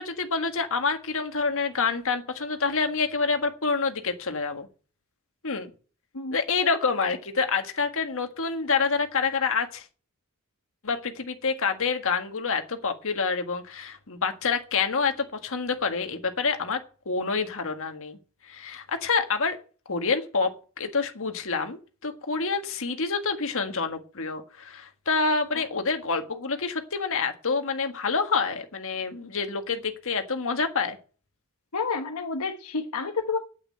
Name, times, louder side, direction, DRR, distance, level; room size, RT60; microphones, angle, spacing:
voice 1, 0.0-4.7 5.4-5.7 6.3-9.8 10.8-16.8 17.0-18.2 18.4-19.6 19.9-20.5 20.8-31.0, left 4 dB, 65° left, 1.7 m, -27 dB
voice 2, 31.7-33.4, left 4 dB, 85° left, 1.1 m, -29 dB
9.0 x 8.5 x 8.6 m
head